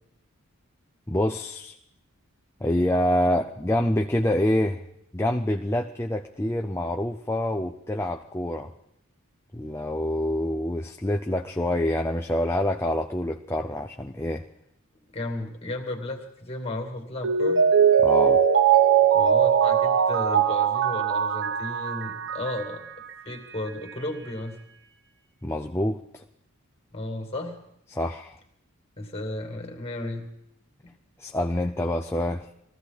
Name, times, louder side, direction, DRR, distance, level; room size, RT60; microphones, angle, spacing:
voice 1, 1.1-1.7 2.6-4.8 5.1-8.7 9.5-14.5 18.0-18.4 25.4-26.2 27.9-28.4 31.2-32.5, left 1 dB, 10° left, 3 dB, 0.5 m, -26 dB
voice 2, 15.1-17.6 19.1-22.9 23.2-24.6 26.9-27.6 29.0-30.3 30.8-30.9, left 1 dB, 25° left, 2 dB, 2.5 m, -34 dB
Mallet percussion, 17.2-22.8 23.1-23.2, right 8 dB, 55° right, 1.0 m, -20 dB
21.5 x 15.0 x 4.1 m, 0.79 s
head